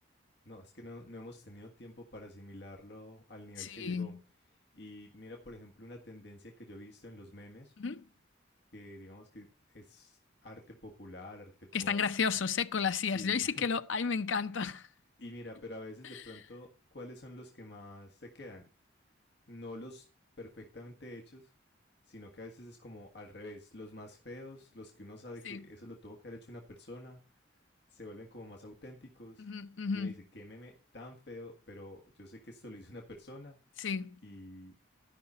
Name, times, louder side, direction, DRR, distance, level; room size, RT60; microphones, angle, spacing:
voice 1, 0.4-4.2 4.7-7.7 8.7-12.0 13.1-13.6 14.5-14.6 15.2-16.7 16.9-18.6 19.5-20.1 20.4-21.5 22.1-27.2 27.9-29.5 29.9-33.6 34.2-34.7, left 1 dB, 60° left, 1.7 m, -48 dB
voice 2, 3.6-4.2 7.8-8.0 11.7-14.9 16.1-16.2 25.4-25.6 29.4-30.1 33.8-34.2, left 6 dB, 85° left, 0.7 m, -32 dB
13.0 x 5.7 x 5.5 m
head